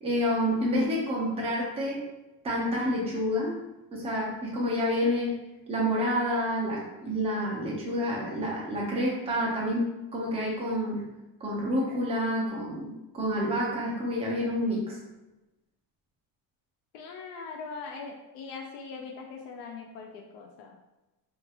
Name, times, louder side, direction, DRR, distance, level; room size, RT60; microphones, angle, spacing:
voice 1, 0.0-2.1 2.4-3.6 3.9-5.3 5.7-11.1 11.4-15.0, equal, 15° right, -4 dB, 0.4 m, -28 dB
voice 2, 16.9-20.8, left 4 dB, 85° left, 2 dB, 0.5 m, -41 dB
2.9 x 2.4 x 2.3 m, 1.0 s
cardioid pair, 160°, 46 cm